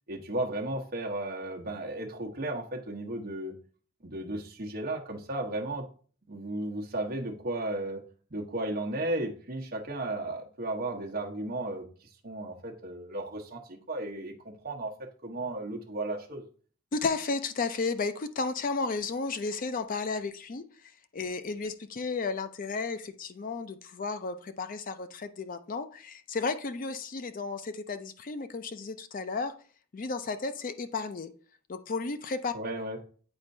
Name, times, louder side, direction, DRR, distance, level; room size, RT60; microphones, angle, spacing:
voice 1, 0.1-3.5 4.0-5.8 6.3-8.0 8.3-14.9 15.2-16.4 32.5-33.0, right 2 dB, 45° right, 1 dB, 1.0 m, -34 dB
voice 2, 16.9-29.5 29.9-31.3 31.7-32.5, left 4 dB, 40° left, 10 dB, 0.4 m, -33 dB
8.8 x 4.3 x 2.7 m, 0.42 s
head